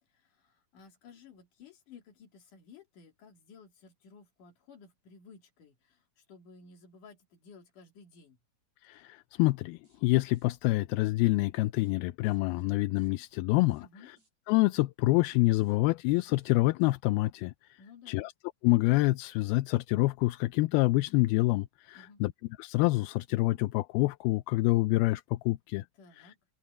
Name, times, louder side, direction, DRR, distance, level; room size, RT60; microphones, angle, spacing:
voice 1, 0.1-8.4 13.8-14.1 17.8-18.3 21.9-22.2 26.0-26.4, left 5 dB, 55° left, 4.1 m, -55 dB
voice 2, 8.8-13.8 14.5-17.8 18.1-18.3 18.6-22.3 22.6-25.9, left 20 dB, 80° left, 2.4 m, -27 dB
sound 1, 9.5-9.6 9.8-10.0 10.3-10.5 11.4-11.5 11.8-12.0 12.2-12.7 13.0-13.4 13.7-13.9 14.2-14.3 15.2-15.3 15.6-15.8 16.1-16.5 16.8-16.9, right 3 dB, 40° right, 9.3 m, -70 dB
omnidirectional pair, 4.6 m